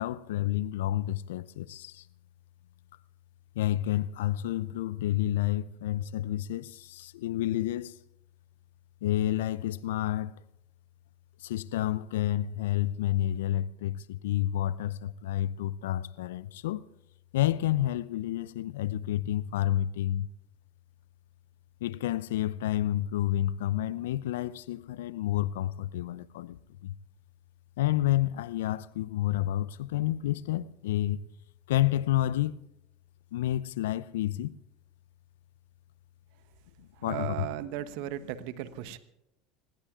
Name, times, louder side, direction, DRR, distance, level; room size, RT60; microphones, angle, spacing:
voice 1, 0.0-2.0 3.6-8.0 9.0-10.4 11.4-16.8 17.3-20.3 21.8-26.6 26.8-26.9 27.8-31.2 31.7-32.6 33.3-34.5 36.8-37.5, left 13 dB, 70° left, 0.5 m, -29 dB
voice 2, 37.1-39.0, right 13 dB, 60° right, 1.1 m, -36 dB
26.5 x 20.5 x 2.5 m
hypercardioid pair, 75°, 0 cm